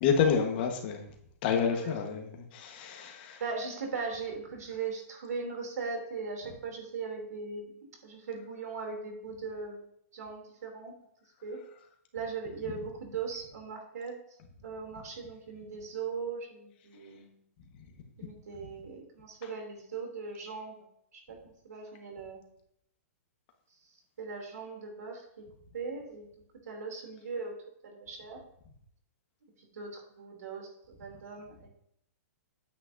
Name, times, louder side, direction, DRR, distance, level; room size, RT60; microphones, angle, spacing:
voice 1, 0.0-1.0 1.4-2.2 2.5-3.4, left 6 dB, 40° left, 3 dB, 1.4 m, -28 dB
voice 2, 1.6-1.9 3.4-9.8 10.1-10.9 11.4-11.6 12.1-14.2 14.6-17.4 18.2-20.9 21.1-22.4 24.2-25.4 25.7-26.3 26.6-27.6 27.8-28.4 29.6-31.7, right 5 dB, 85° right, 1 dB, 3.1 m, -39 dB
9.1 x 8.3 x 2.7 m, 0.71 s
hypercardioid pair, 165°, 8 cm